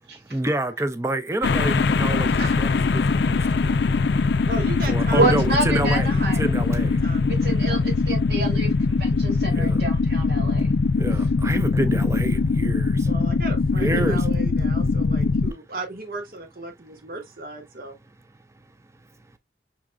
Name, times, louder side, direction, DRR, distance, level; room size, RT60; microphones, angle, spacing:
voice 1, 0.3-3.8 4.9-7.0 9.5-9.8 11.0-13.1 13.8-14.2, right 1 dB, 15° right, 0.5 m, -28 dB
sound 1, 1.4-15.5, left 4 dB, 70° left, 0.4 m, -21 dB
voice 2, 4.5-7.8 13.0-17.9, right 2 dB, 55° right, 1.2 m, -36 dB
voice 3, 5.2-6.4 7.4-10.7, right 2 dB, 70° right, 2.0 m, -27 dB
6.0 x 3.6 x 2.2 m
head